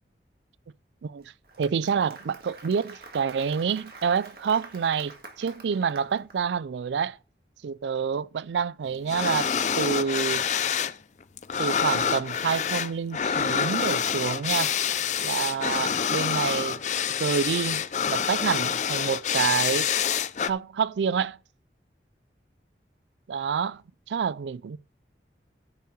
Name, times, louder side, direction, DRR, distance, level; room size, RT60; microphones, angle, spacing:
voice 1, 1.0-1.3 1.6-7.2 7.6-10.4 11.6-14.8 15.2-16.8 17.2-19.9 20.5-21.4 23.3-23.8 24.1-24.8, right 6 dB, 85° right, 0.4 m, -28 dB
Applause, 1.2-6.4, right 3 dB, 55° right, 1.8 m, -47 dB
sound 1, 9.1-11.0 11.2-20.5, left 7 dB, 40° left, 0.5 m, -27 dB
10.0 x 5.6 x 6.4 m
head